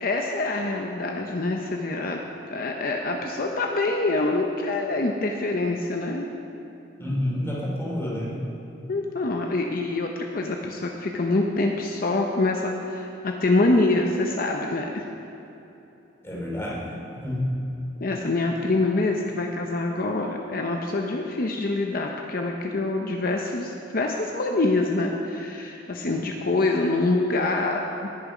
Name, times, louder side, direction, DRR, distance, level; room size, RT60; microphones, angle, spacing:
voice 1, 0.0-2.2 2.5-6.3 8.9-15.0 18.0-28.1, left 2 dB, 50° left, 1 dB, 0.7 m, -25 dB
voice 2, 7.0-8.4 16.2-17.5, left 1 dB, 15° left, -5 dB, 2.7 m, -29 dB
18.5 x 6.8 x 5.0 m, 2.9 s
head